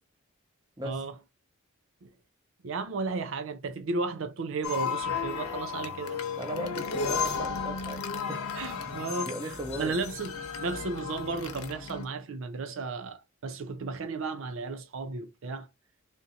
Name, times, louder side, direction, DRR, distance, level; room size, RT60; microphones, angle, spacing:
voice 1, 2.6-6.2 8.6-10.3 10.6-15.7, right 3 dB, 60° right, 0.5 m, -34 dB
sound 1, 4.6-12.0, left 6 dB, 85° left, 0.9 m, -34 dB
voice 2, 6.4-8.4 9.2-10.0, right 1 dB, 20° right, 0.9 m, -38 dB
3.6 x 2.7 x 3.8 m
head